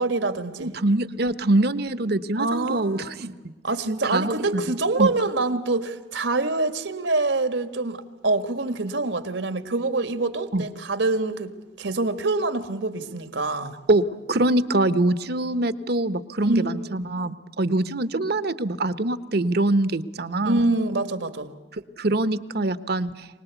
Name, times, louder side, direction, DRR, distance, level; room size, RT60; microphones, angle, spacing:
voice 1, 0.0-0.7 2.4-3.3 3.6-11.5 11.8-13.8 16.4-17.1 20.4-21.5, right 2 dB, 80° right, 1.7 m, -25 dB
voice 2, 0.6-3.3 4.0-4.6 5.0-5.1 10.5-10.7 13.9-20.7 21.7-23.3, right 2 dB, 60° right, 1.0 m, -24 dB
25.0 x 19.5 x 8.2 m
head